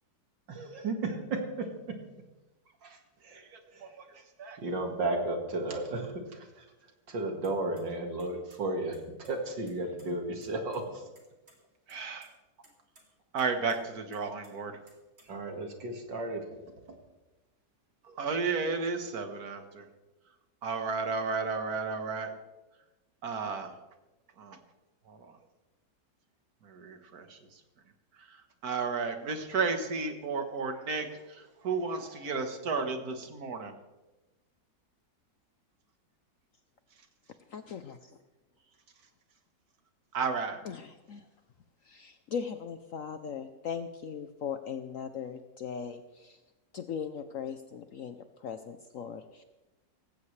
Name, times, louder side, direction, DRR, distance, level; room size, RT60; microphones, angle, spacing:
voice 1, 0.5-1.7 2.8-3.4 3.7-4.2 4.6-11.1 15.2-16.6, right 2 dB, 75° right, 3 dB, 2.6 m, -34 dB
voice 2, 3.3-4.0 4.4-4.6 11.9-12.3 13.3-14.7 18.0-19.9 20.6-22.4 23.2-23.8 24.4-24.6 25.1-25.4 26.6-27.6 28.1-33.7 40.1-40.6, right 4 dB, 55° right, 7 dB, 1.8 m, -33 dB
sound 1, 7.4-7.8 8.2-8.6 8.9-10.1 10.4-10.5 10.7-10.8 11.1-11.6 11.9-12.3 12.6-13.0 13.4-13.8 14.1-15.5, right 2 dB, 35° right, 3.0 m, -60 dB
voice 3, 37.5-38.2 40.6-41.3 41.8-46.4 46.7-49.4, left 7 dB, 65° left, 9 dB, 0.8 m, -39 dB
18.5 x 15.5 x 3.3 m, 1.1 s
omnidirectional pair, 2.0 m